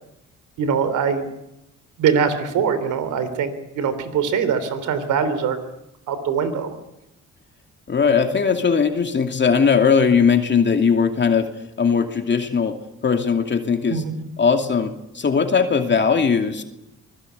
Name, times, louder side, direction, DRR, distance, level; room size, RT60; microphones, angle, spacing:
voice 1, 0.6-1.3 2.0-5.6 6.1-6.7 13.9-14.2, right 6 dB, 85° right, 12 dB, 3.5 m, -22 dB
voice 2, 7.9-11.5 11.8-14.0 14.4-16.6, left 6 dB, 35° left, 5 dB, 2.6 m, -19 dB
24.5 x 20.5 x 8.3 m, 0.87 s
cardioid pair, 90°, 30 cm